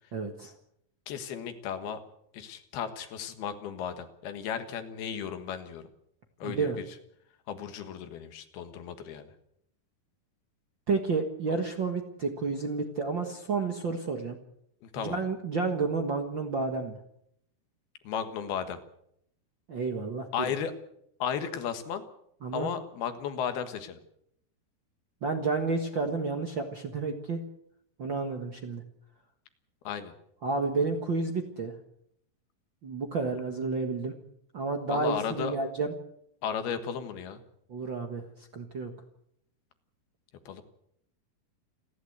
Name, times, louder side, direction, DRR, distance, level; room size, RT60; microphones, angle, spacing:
voice 1, 0.1-0.5 6.4-6.8 10.9-14.4 15.0-17.0 19.7-20.5 22.4-22.7 25.2-27.4 28.0-28.8 30.4-31.7 32.8-34.1 34.5-35.9 37.7-38.2 38.5-38.9, right 4 dB, 45° right, 4 dB, 1.5 m, -30 dB
voice 2, 1.1-2.0 2.3-5.8 6.4-6.9 7.5-9.3 11.5-11.6 14.8-15.2 18.1-18.8 20.3-20.8 21.2-22.0 22.5-24.0 29.9-30.1 34.9-35.6 36.4-37.4 40.5-40.6, left 8 dB, 80° left, 9 dB, 3.5 m, -34 dB
29.0 x 11.5 x 8.0 m, 0.73 s
omnidirectional pair, 4.4 m